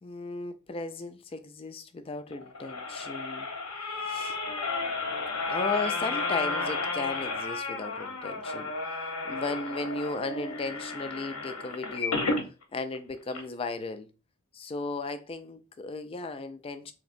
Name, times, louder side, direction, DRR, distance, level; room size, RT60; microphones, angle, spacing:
voice 1, 0.0-3.5 4.0-4.4 5.5-12.3 12.7-14.1 14.5-16.9, left 3 dB, 25° left, 0.3 m, -35 dB
sound 1, 2.3-12.5 12.9-13.0 13.3-13.4, left 3 dB, 85° left, 0.9 m, -32 dB
4.1 x 2.8 x 2.5 m
head